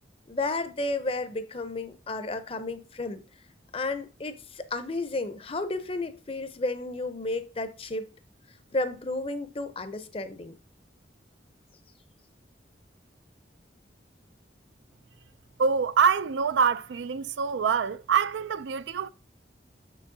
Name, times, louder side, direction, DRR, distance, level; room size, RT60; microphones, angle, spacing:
voice 1, 0.3-3.2 3.7-8.1 8.7-10.5, left 2 dB, 30° left, 0.6 m, -32 dB
voice 2, 15.6-19.1, right 6 dB, 75° right, 0.4 m, -25 dB
6.4 x 6.2 x 2.7 m
head